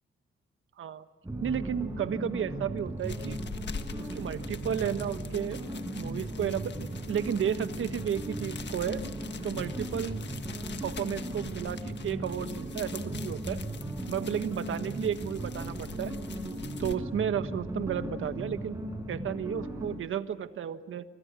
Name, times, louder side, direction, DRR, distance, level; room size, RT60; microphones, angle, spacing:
sound 1, 1.2-20.0, right 1 dB, 15° right, 6.9 m, -37 dB
voice 1, 1.4-3.4 4.0-5.6 5.9-9.0 9.4-10.2 10.8-13.6 14.1-16.1 16.8-18.8 19.1-21.0, right 9 dB, 75° right, 10 dB, 1.4 m, -33 dB
sound 2, 2.8-17.0, left 6 dB, 60° left, 1.5 m, -45 dB
28.5 x 24.0 x 6.2 m, 1.4 s
cardioid pair, 85°, 21 cm